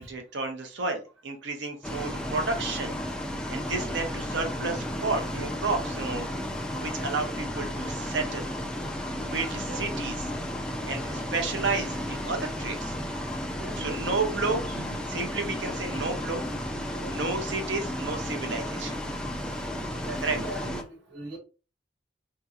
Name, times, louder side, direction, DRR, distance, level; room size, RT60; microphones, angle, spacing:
voice 1, 0.0-2.9 3.5-6.3 6.7-8.5 9.3-10.1 10.9-12.9 13.8-16.4 17.0-19.0 20.2-20.4, right 3 dB, 65° right, 0.6 m, -31 dB
Bus, 1.8-20.8, left 1 dB, 5° left, 0.4 m, -33 dB
voice 2, 9.3-10.1 13.6-14.8 16.7-17.3 19.2-19.3 20.0-21.4, right 2 dB, 85° right, 1.2 m, -41 dB
3.8 x 2.8 x 2.3 m
head